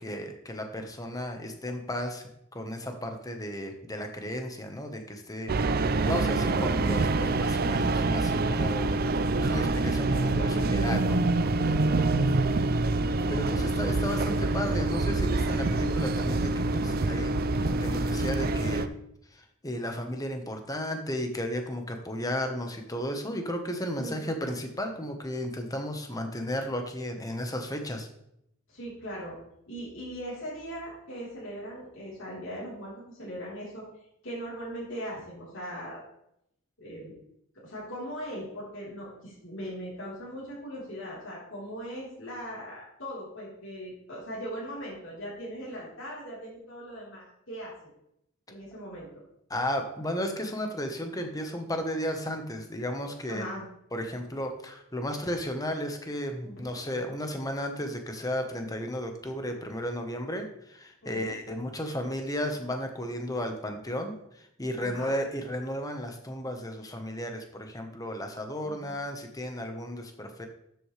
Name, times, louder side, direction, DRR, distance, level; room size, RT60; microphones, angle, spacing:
voice 1, 0.0-11.2 13.3-18.9 19.3-28.1 49.5-53.5 53.9-70.5, equal, 15° left, 5 dB, 1.2 m, -34 dB
sound 1, 5.5-18.9, right 2 dB, 45° right, 0.5 m, -26 dB
voice 2, 11.5-12.3 23.9-24.3 28.7-29.4 29.7-33.8 34.2-36.0 36.8-37.1 37.6-47.7 48.5-49.1 53.3-53.7 56.4-56.8 61.0-61.4 64.8-65.2 68.6-68.9, equal, 60° left, -7 dB, 4.0 m, -39 dB
12.5 x 8.0 x 3.3 m, 0.77 s
head